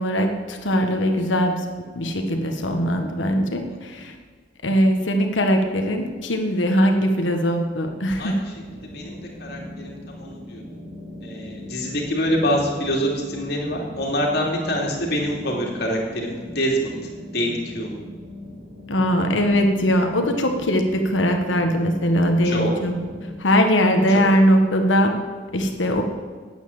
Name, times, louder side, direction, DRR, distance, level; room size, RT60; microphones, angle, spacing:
voice 1, 0.0-1.6 1.9-4.1 4.6-8.4 18.9-23.0 23.4-25.1 25.5-26.0, equal, 85° left, 4 dB, 1.4 m, -20 dB
ambience with modulation, 8.5-23.4, left 1 dB, 85° right, 2.9 m, -39 dB
voice 2, 8.9-10.6 11.2-16.9 17.3-17.9 22.4-22.7, equal, 60° left, -1 dB, 2.7 m, -25 dB
9.7 x 8.3 x 8.7 m, 1.5 s
head